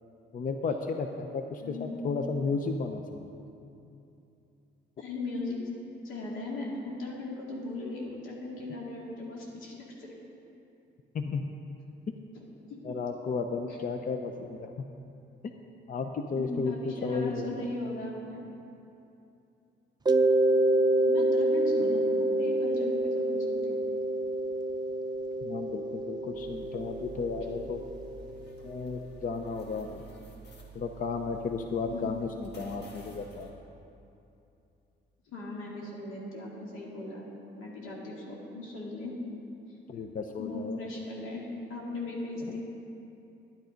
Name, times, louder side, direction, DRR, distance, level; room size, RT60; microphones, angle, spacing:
voice 1, 0.3-3.3 11.1-11.6 12.1-12.2 12.8-14.7 15.9-17.7 25.4-27.8 28.6-30.1 30.7-33.5 39.9-40.8 42.5-42.6, left 4 dB, 45° left, 5 dB, 0.6 m, -33 dB
voice 2, 1.6-2.0 5.0-5.6 6.0-10.1 12.3-12.4 12.7-12.8 16.4-18.4 21.1-23.8 27.4-27.5 31.9-32.2 35.3-37.3 37.5-39.1 40.4-42.6, left 2 dB, 90° left, -3 dB, 2.3 m, -38 dB
Mallet percussion, 20.1-28.7, right 1 dB, 20° right, 0.5 m, -27 dB
Fly stuck on a window net, 26.3-33.5, right 5 dB, 60° left, 1.8 m, -50 dB
11.0 x 9.3 x 5.1 m, 2.7 s
cardioid pair, 90°, 20 cm